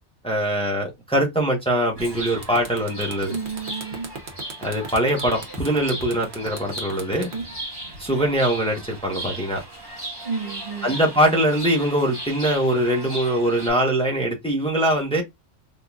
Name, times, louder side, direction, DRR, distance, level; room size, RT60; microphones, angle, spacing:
voice 1, 0.2-3.4 4.6-7.3 8.0-9.6 10.8-15.2, right 1 dB, 5° left, 1.0 m, -22 dB
sound 1, 1.9-2.1 2.4-8.5, right 4 dB, 65° right, 1.2 m, -38 dB
Chirp tweet, 2.0-13.7, right 1 dB, 20° right, 1.4 m, -37 dB
voice 2, 3.3-4.2 7.3-7.5 10.2-11.0 15.2-15.3, right 5 dB, 45° right, 0.8 m, -31 dB
3.7 x 2.8 x 2.4 m
omnidirectional pair, 1.2 m